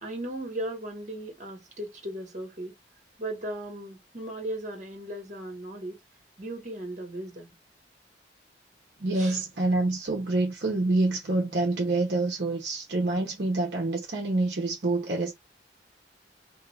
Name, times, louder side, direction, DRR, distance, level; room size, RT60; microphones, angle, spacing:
voice 1, 0.0-2.7 3.2-6.0 6.4-7.5 9.1-9.4, right 1 dB, 40° right, 1.2 m, -37 dB
voice 2, 9.0-15.3, right 2 dB, 60° right, 0.8 m, -27 dB
3.2 x 2.5 x 3.2 m
head